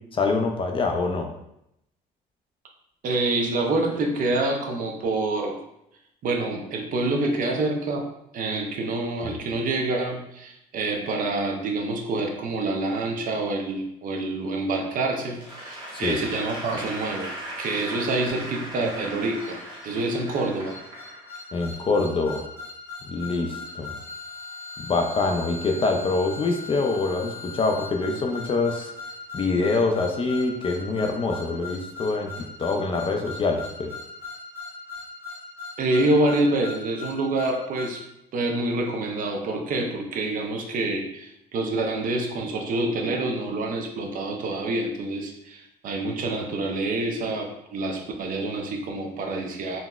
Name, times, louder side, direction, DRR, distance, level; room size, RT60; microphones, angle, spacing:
voice 1, 0.1-1.3 9.2-9.3 15.9-16.2 21.5-22.4 23.1-23.9 24.9-28.9 29.3-33.9, left 3 dB, 30° left, 4 dB, 0.4 m, -25 dB
voice 2, 3.0-5.6 6.2-8.0 8.3-17.3 17.6-19.6 19.8-20.8 35.8-38.0 38.3-49.8, right 2 dB, 55° right, 2 dB, 0.6 m, -27 dB
Applause / Crowd, 15.3-21.6, right 1 dB, 25° right, 0.9 m, -38 dB
sound 1, 19.4-38.0, left 3 dB, 70° left, 0.8 m, -39 dB
3.9 x 2.0 x 2.3 m, 0.81 s
cardioid pair, 110°, 17 cm